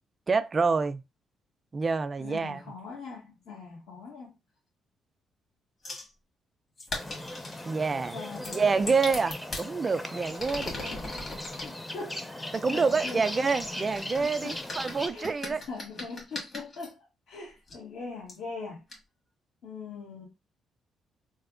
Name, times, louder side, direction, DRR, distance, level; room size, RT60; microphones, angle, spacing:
voice 1, 0.3-1.0 1.7-2.6 7.7-8.2 8.5-10.7 12.5-15.6, right 4 dB, 35° right, 0.3 m, -27 dB
voice 2, 2.2-4.3 8.1-8.8 10.5-11.3 11.6-12.2 12.7-13.2 14.2-14.6 15.1-18.8 19.6-20.3, left 4 dB, 75° left, 1.4 m, -42 dB
sound 1, 5.8-6.1 6.8-7.7 8.4-9.7 10.3-11.7 12.5-16.9 17.7-17.8 18.3-18.4 18.9-19.0, left 2 dB, 45° left, 1.7 m, -40 dB
sound 2, 6.9-15.1, left 1 dB, 10° left, 0.6 m, -39 dB
3.2 x 2.1 x 3.6 m
cardioid pair, 90°, 0 cm